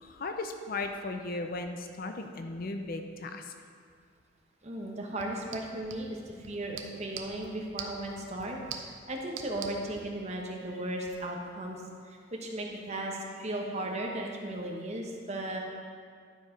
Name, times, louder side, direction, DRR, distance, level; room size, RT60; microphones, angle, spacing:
voice 1, 0.0-3.5, left 2 dB, 50° left, 5 dB, 0.6 m, -36 dB
voice 2, 4.6-8.6 8.8-11.8 12.0-15.6, right 1 dB, 35° right, 0 dB, 1.0 m, -36 dB
sound 1, 5.1-10.1, right 6 dB, 75° right, 0.7 m, -45 dB
11.0 x 4.6 x 5.1 m, 2.1 s
head